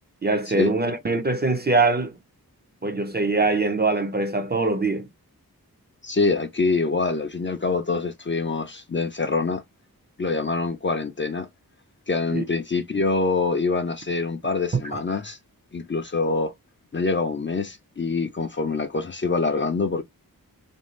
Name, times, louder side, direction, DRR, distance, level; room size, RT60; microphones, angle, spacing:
voice 1, 0.2-2.1 2.8-5.1 12.3-12.4 14.9-15.0, right 3 dB, 30° right, 0.5 m, -23 dB
voice 2, 6.0-9.6 10.2-11.5 12.1-15.4 15.7-16.5 16.9-20.0, left 3 dB, 35° left, 0.4 m, -25 dB
2.6 x 2.3 x 3.1 m
wide cardioid pair, 60°, 36 cm